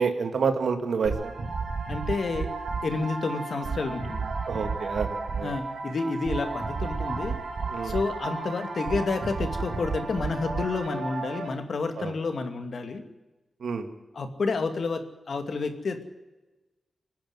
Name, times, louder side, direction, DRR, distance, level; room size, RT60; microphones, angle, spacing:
voice 1, 0.0-1.3 4.5-5.5 7.7-7.9 12.0-12.1 13.6-13.9, right 5 dB, 80° right, 7 dB, 2.3 m, -28 dB
sound 1, 1.0-11.5, right 4 dB, 65° right, 3.4 m, -32 dB
voice 2, 1.9-2.5 2.8-4.2 5.4-7.4 7.8-13.0 14.1-16.0, left 4 dB, 60° left, 6 dB, 2.5 m, -30 dB
26.0 x 10.5 x 9.7 m, 1.1 s
wide cardioid pair, 135°, 0 cm